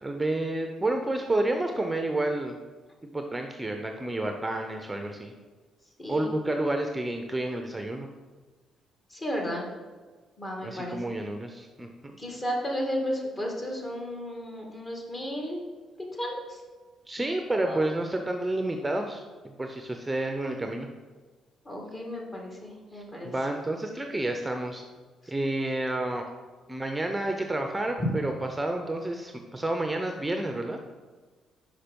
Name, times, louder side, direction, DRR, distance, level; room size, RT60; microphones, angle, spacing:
voice 1, 0.0-2.6 3.0-5.3 6.1-8.1 10.6-12.1 17.1-19.2 19.6-20.9 22.9-24.8 25.3-26.2 26.7-30.8, right 1 dB, 15° right, 4 dB, 0.6 m, -30 dB
voice 2, 9.1-9.7 10.4-11.2 12.2-15.6 16.2-16.4 17.6-17.8 21.7-23.3 28.0-28.1, equal, 30° left, 0 dB, 1.8 m, -33 dB
5.7 x 5.2 x 5.2 m, 1.4 s
cardioid pair, 90°, 0 cm